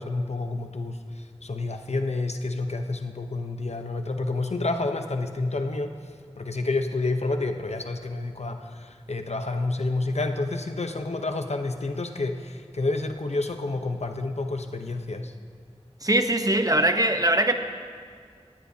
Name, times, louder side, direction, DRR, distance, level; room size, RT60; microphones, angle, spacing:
voice 1, 0.0-5.9 6.4-15.3, left 2 dB, 80° left, 6 dB, 0.8 m, -29 dB
voice 2, 16.0-17.5, right 1 dB, 35° right, 7 dB, 0.9 m, -21 dB
19.5 x 15.0 x 2.8 m, 2.1 s
wide cardioid pair, 40°, 11 cm